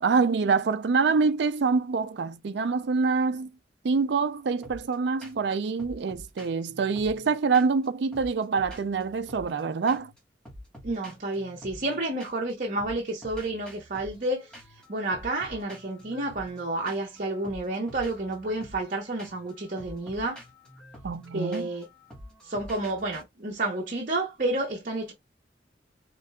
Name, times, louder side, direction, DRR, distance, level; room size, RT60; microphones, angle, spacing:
voice 1, 0.0-3.5 3.8-10.1 21.0-21.7, right 4 dB, 65° right, 0.4 m, -25 dB
sound 1, 4.6-4.9 5.2-5.5 5.8-7.9 8.1-9.6 9.9-10.2 10.4-12.5 12.8-23.2, equal, 5° left, 1.4 m, -47 dB
voice 2, 10.8-14.6 14.9-20.4 21.3-21.9 22.4-25.1, right 2 dB, 45° right, 0.9 m, -30 dB
5.1 x 3.2 x 2.3 m
head